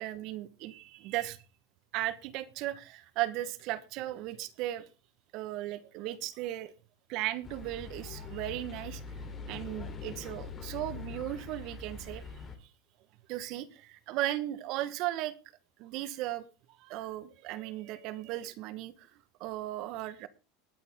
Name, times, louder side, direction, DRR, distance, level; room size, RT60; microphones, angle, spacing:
voice 1, 0.0-1.4 1.9-4.9 5.3-6.7 7.1-9.0 9.5-12.2 13.3-15.3 15.8-16.4 16.8-19.1 19.4-20.3, right 15 dB, 55° right, 1.3 m, -36 dB
sound 1, 7.4-12.6, left 5 dB, 30° left, 3.2 m, -43 dB
20.0 x 8.4 x 3.6 m
hypercardioid pair, 100°, 0 cm